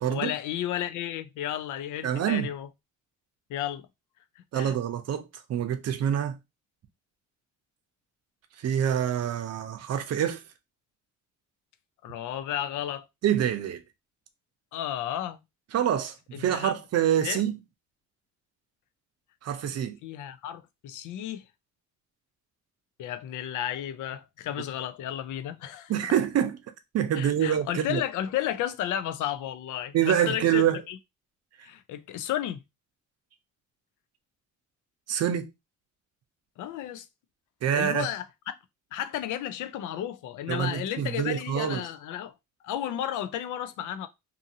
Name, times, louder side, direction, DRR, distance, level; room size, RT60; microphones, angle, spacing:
voice 1, 0.1-2.7 3.5-3.9 4.5-4.7 12.0-13.1 14.7-15.4 16.3-16.7 17.2-17.4 20.0-21.4 23.0-25.9 27.2-31.0 31.6-32.6 36.6-37.1 37.7-38.5 38.9-42.3 42.6-44.1, left 11 dB, 80° left, 0.5 m, -33 dB
voice 2, 2.0-2.5 4.5-6.4 8.6-10.4 13.2-13.8 15.7-17.6 19.4-20.0 25.9-26.6 26.9-28.0 29.9-30.8 35.1-35.5 37.6-38.1 40.5-41.8, right 9 dB, 55° right, 0.6 m, -26 dB
2.7 x 2.5 x 2.7 m
cardioid pair, 90°, 30 cm